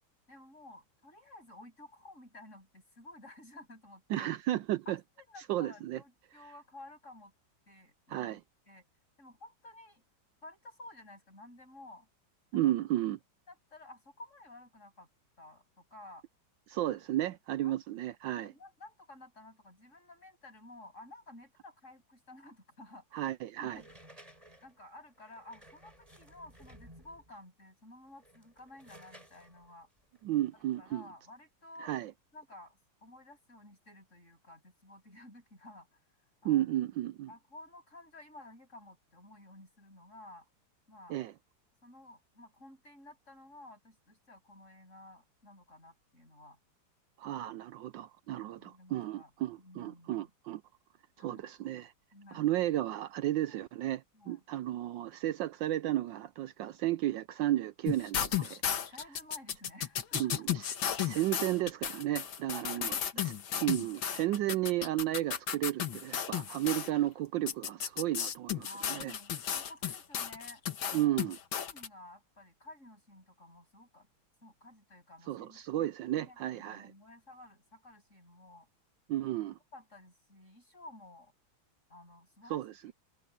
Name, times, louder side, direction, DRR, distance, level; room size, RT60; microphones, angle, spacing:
voice 1, 0.3-4.3 4.8-7.3 7.7-8.4 8.7-8.9 9.2-10.0 10.4-12.1 13.5-15.1 15.4-16.2 17.3-17.7 18.3-23.3 23.6-23.9 24.6-29.9 30.5-32.0 32.3-36.0 36.4-36.8 37.3-40.5 40.9-41.2 41.8-46.6 48.6-49.3 49.6-50.3 51.2-51.5 52.1-52.5 53.5-53.6 54.1-54.4 58.4-58.5 58.9-60.5 62.5-63.4 68.6-71.2 71.6-74.1 74.4-78.7 79.7-81.3 81.9-82.6, left 1 dB, 35° left, 8.5 m, -53 dB
voice 2, 4.1-5.0 5.5-6.0 8.1-8.4 12.5-13.2 16.7-18.5 23.1-23.8 30.2-31.1 31.8-32.1 36.4-37.3 41.1-41.3 47.2-50.6 51.2-51.9 52.3-58.4 60.1-63.0 63.6-69.1 70.9-71.4 75.3-76.9 79.1-79.6 82.5-82.9, right 14 dB, 75° right, 1.2 m, -33 dB
sound 1, 23.7-27.4 28.1-31.0, right 1 dB, 15° right, 6.2 m, -57 dB
sound 2, 57.9-66.9 67.5-71.9, left 9 dB, 75° left, 2.2 m, -34 dB
omnidirectional pair, 2.2 m